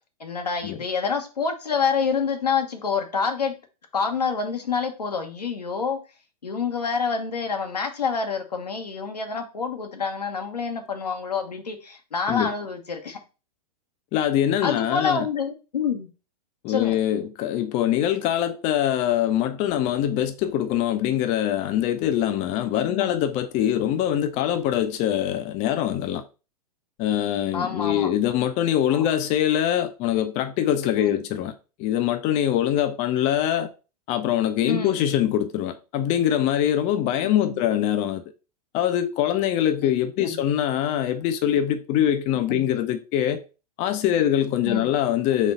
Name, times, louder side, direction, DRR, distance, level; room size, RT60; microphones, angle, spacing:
voice 1, 0.2-3.5 3.9-6.0 6.4-13.2 14.6-16.1 16.7-17.0 22.8-23.2 27.5-28.1 28.9-29.0 31.0-31.2 34.6-34.9 37.2-37.6 39.8-39.9 40.2-40.4 42.5-42.6 44.7-44.9, left 5 dB, 90° left, 1.0 m, -27 dB
voice 2, 14.1-15.3 16.6-26.2 27.0-31.5 31.8-33.7 34.1-38.2 38.7-43.4 43.8-45.5, left 11 dB, 35° left, 0.5 m, -23 dB
4.1 x 3.0 x 4.0 m
hypercardioid pair, 105°, 20 cm